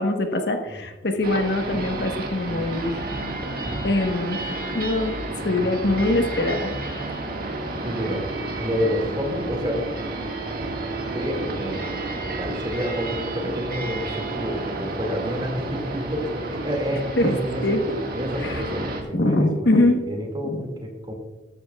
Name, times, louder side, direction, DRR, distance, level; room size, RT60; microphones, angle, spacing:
voice 1, 0.0-3.1 3.8-6.7 17.2-17.8 18.4-18.6 19.1-20.0 20.4-20.6, left 1 dB, 65° left, 4 dB, 1.3 m, -23 dB
sound 1, 1.2-19.0, right 2 dB, 55° right, 1.9 m, -31 dB
voice 2, 7.8-8.3 8.6-9.9 11.1-11.9 12.2-17.8 18.1-21.1, equal, 25° right, 2 dB, 2.3 m, -29 dB
13.5 x 12.5 x 2.4 m, 1.1 s
head